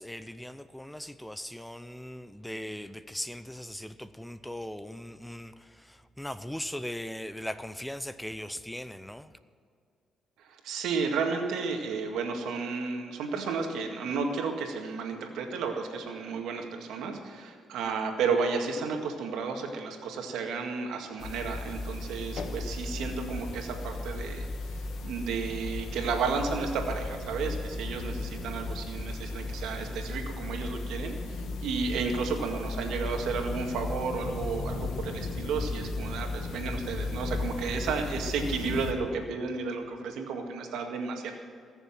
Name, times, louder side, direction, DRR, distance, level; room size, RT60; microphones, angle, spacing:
voice 1, 0.0-9.3, left 1 dB, 5° left, 13 dB, 0.6 m, -39 dB
voice 2, 10.5-24.5 25.0-41.3, right 5 dB, 85° right, 3 dB, 1.9 m, -32 dB
sound 1, 21.2-38.9, left 3 dB, 70° left, 1.4 m, -35 dB
19.0 x 7.0 x 7.4 m, 2.3 s
cardioid pair, 90°, 0 cm